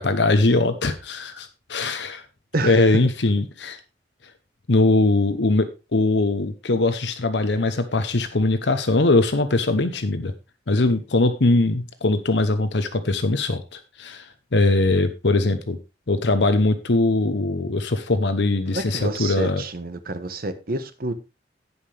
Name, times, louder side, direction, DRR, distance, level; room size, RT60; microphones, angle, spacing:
voice 1, 0.0-2.2 2.6-3.8 4.7-10.3 10.7-15.8 16.1-19.6, left 2 dB, 70° left, 0.9 m, -21 dB
voice 2, 18.7-21.1, right 2 dB, 55° right, 1.2 m, -28 dB
17.0 x 5.6 x 3.4 m
head